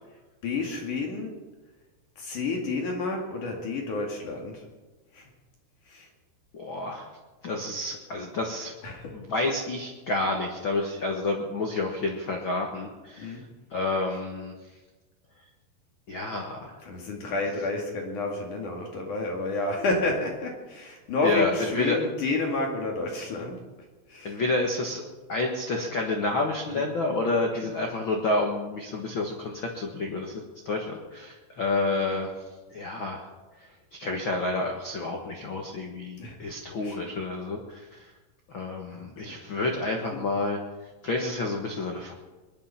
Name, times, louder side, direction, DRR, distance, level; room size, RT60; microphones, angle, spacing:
voice 1, 0.4-1.3 2.2-4.6 5.1-5.2 5.9-6.1 8.8-9.1 13.2-13.4 16.8-23.6 24.1-24.4 26.7-26.9 27.6-27.7 36.2-36.5 36.8-37.0 38.9-39.3 40.1-40.2, left 3 dB, 55° left, 0 dB, 3.2 m, -30 dB
voice 2, 6.5-7.1 7.4-8.7 9.1-13.4 13.7-14.5 16.1-16.8 21.2-22.0 24.2-25.0 25.3-32.3 32.7-33.3 33.9-37.9 38.5-40.6 41.0-42.1, left 2 dB, 80° left, 1 dB, 1.1 m, -29 dB
22.0 x 11.5 x 5.8 m, 1.2 s
omnidirectional pair, 4.9 m